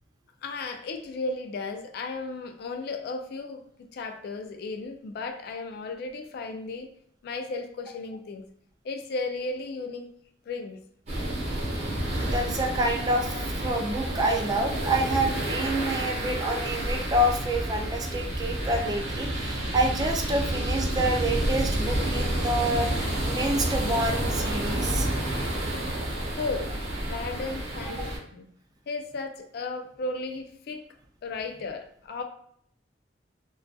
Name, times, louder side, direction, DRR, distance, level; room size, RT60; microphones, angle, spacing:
voice 1, 0.4-6.9 7.2-8.5 8.8-10.1 10.5-10.8 26.4-26.7 27.0-28.5 28.9-30.8 31.2-32.2, left 3 dB, 60° left, 5 dB, 0.3 m, -34 dB
sound 1, 11.1-28.2, right 1 dB, 40° right, 0.7 m, -29 dB
voice 2, 12.3-13.4 13.6-25.5, right 1 dB, 20° right, 2 dB, 0.3 m, -28 dB
2.3 x 2.2 x 2.6 m, 0.66 s
head